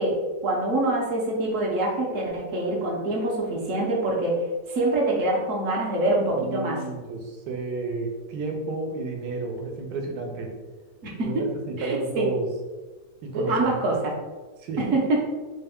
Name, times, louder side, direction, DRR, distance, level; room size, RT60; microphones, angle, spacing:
voice 1, 0.0-4.4 4.7-6.8 11.0-11.3 11.8-12.3 13.3-14.1 14.8-15.2, right 2 dB, 60° right, -2 dB, 1.0 m, -25 dB
voice 2, 6.3-10.5 11.2-12.5 13.2-13.9 14.6-15.0, right 3 dB, 85° right, 2 dB, 1.3 m, -31 dB
4.1 x 2.2 x 3.4 m, 1.3 s
omnidirectional pair, 1.8 m